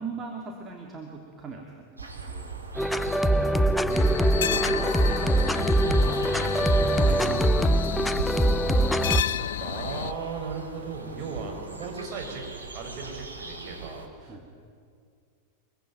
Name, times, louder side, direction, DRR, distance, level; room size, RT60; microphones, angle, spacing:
voice 1, 0.0-2.6 3.4-6.3 7.0-8.5 11.0-11.3 14.3-14.5, right 4 dB, 20° right, 0 dB, 3.1 m, -41 dB
sound 1, 2.0-14.1, right 4 dB, 80° right, 2.9 m, -40 dB
sound 2, 2.8-9.2, right 1 dB, 5° left, 0.6 m, -23 dB
voice 2, 3.3-3.9 6.3-6.9 9.6-12.4 12.7-14.4, right 5 dB, 35° right, 2 dB, 6.7 m, -37 dB
sound 3, 3.9-10.1, left 10 dB, 60° left, 0.6 m, -32 dB
25.0 x 23.0 x 9.3 m, 2.3 s
figure-of-eight pair, 90°, 0 cm